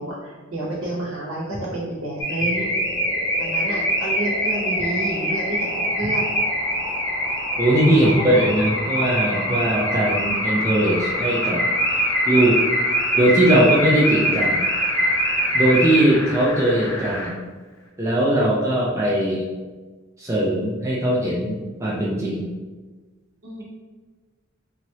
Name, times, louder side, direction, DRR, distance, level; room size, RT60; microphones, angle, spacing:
voice 1, 0.0-2.7 3.4-6.3 8.0-8.3 23.4-23.6, right 1 dB, 75° right, -6 dB, 0.9 m, -29 dB
Car / Alarm, 2.2-16.3, equal, 15° left, 0.8 m, -24 dB
sound 1, 2.4-17.4 17.8-17.9, left 2 dB, 65° left, 0.6 m, -34 dB
voice 2, 7.6-11.6 12.3-12.6 13.2-14.6 15.5-17.4 18.0-19.4 20.2-22.5, right 1 dB, 15° right, -6 dB, 0.4 m, -20 dB
2.9 x 2.8 x 2.7 m, 1.3 s
head